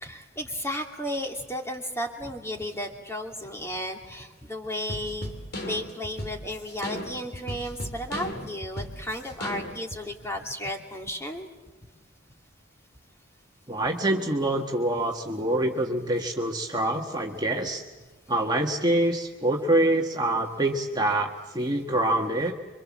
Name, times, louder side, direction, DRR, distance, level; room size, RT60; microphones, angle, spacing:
voice 1, 0.0-5.3 5.7-11.5, equal, 15° left, 2 dB, 2.5 m, -34 dB
sound 1, 4.9-10.0, left 1 dB, 55° left, 2.6 m, -36 dB
voice 2, 13.7-17.8 18.3-22.5, right 1 dB, 20° right, 1 dB, 1.5 m, -25 dB
26.5 x 24.5 x 7.4 m, 1.2 s
head